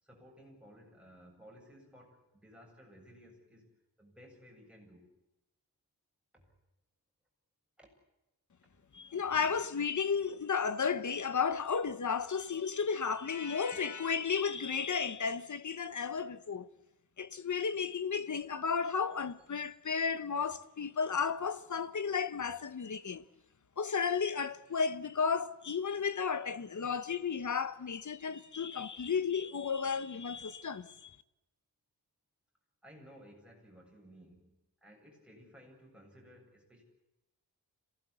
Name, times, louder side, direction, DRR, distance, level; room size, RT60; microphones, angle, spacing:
voice 1, 0.0-3.7 4.0-5.1 6.3-6.5 7.8-7.9 8.6-8.7 32.8-36.8, equal, 5° right, 7.7 m, -57 dB
voice 2, 8.9-16.7 17.2-23.2 23.8-31.2, left 6 dB, 45° left, 1.2 m, -33 dB
27.0 x 18.0 x 8.3 m
wide cardioid pair, 155°, 39 cm